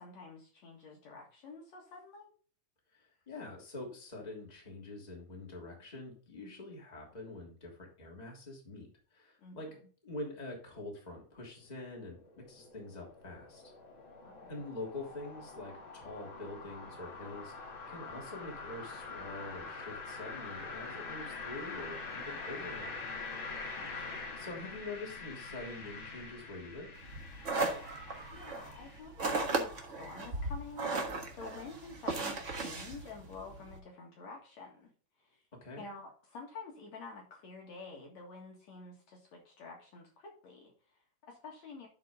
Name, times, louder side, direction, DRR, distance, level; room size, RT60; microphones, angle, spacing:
voice 1, 0.0-2.3 9.4-9.8 14.2-14.6 23.6-23.9 28.3-34.9 35.2-35.4 35.8-41.9, left 4 dB, 60° left, 0 dB, 2.8 m, -49 dB
voice 2, 2.9-9.7 10.0-12.2 12.5-13.7 14.5-23.1 23.9-24.0 24.4-26.9 35.6-35.8, left 2 dB, 15° left, -1 dB, 2.8 m, -45 dB
sound 1, 11.5-29.0, left 4 dB, 40° left, 2.4 m, -45 dB
sound 2, 27.0-33.8, right 3 dB, 70° right, 0.7 m, -36 dB
11.5 x 4.6 x 3.8 m, 0.42 s
omnidirectional pair, 3.8 m